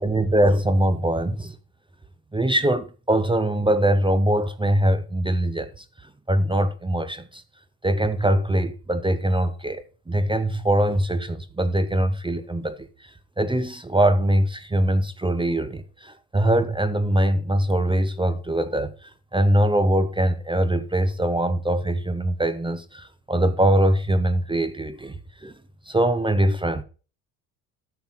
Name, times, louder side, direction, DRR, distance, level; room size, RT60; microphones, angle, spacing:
voice 1, 0.0-1.6 2.3-5.8 6.3-7.4 7.8-25.5 25.9-26.8, right 1 dB, 10° right, 0.8 m, -22 dB
10.5 x 6.8 x 4.1 m
hypercardioid pair, 60°, 46 cm